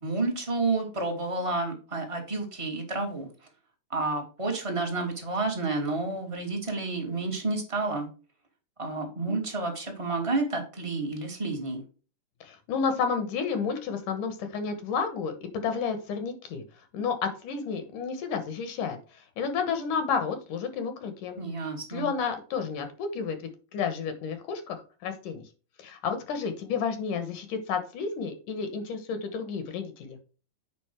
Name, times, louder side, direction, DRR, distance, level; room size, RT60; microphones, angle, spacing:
voice 1, 0.0-3.3 3.9-8.1 8.8-11.8 21.4-22.1, right 3 dB, 15° right, 2 dB, 1.2 m, -30 dB
voice 2, 12.4-16.6 16.9-19.0 19.4-21.4 21.9-23.4 23.7-25.4 25.8-30.2, left 6 dB, 75° left, 8 dB, 2.7 m, -31 dB
8.4 x 5.3 x 4.5 m, 0.36 s
omnidirectional pair, 3.8 m